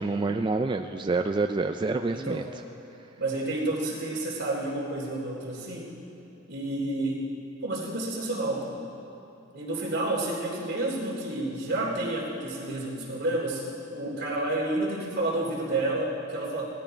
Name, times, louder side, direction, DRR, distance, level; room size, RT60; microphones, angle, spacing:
voice 1, 0.0-2.4, right 3 dB, 25° right, 6 dB, 0.3 m, -27 dB
voice 2, 2.1-2.5 3.2-5.9 6.5-7.2 7.6-9.0 9.5-13.7 13.9-16.6, right 2 dB, 55° right, -4 dB, 3.3 m, -30 dB
18.5 x 13.0 x 4.5 m, 2.9 s
head